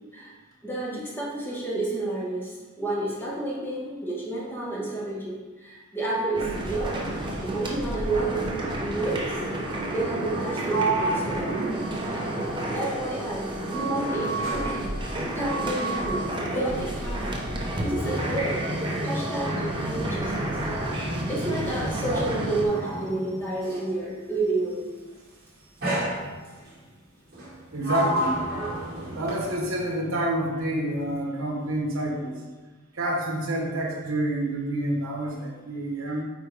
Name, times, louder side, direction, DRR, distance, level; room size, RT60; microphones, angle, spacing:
voice 1, 0.6-9.4 9.9-14.9 15.3-17.4 17.7-18.7 19.0-19.6 19.9-20.6 20.9-25.0, right 2 dB, 10° left, -5 dB, 1.6 m, -30 dB
sound 1, 6.3-22.6, right 1 dB, 20° right, 0.9 m, -31 dB
Sliding door, 10.2-13.5 13.8-24.0 24.9-25.2 25.8-26.7 27.3-29.8, right 1 dB, 45° right, 2.0 m, -33 dB
Wind instrument woodwind instrument, 11.8-18.6, right 2 dB, 30° left, 1.6 m, -37 dB
voice 2, 27.7-28.4 29.1-32.4 32.9-36.2, right 1 dB, 65° right, -1 dB, 1.3 m, -28 dB
8.9 x 4.4 x 3.4 m, 1.3 s
head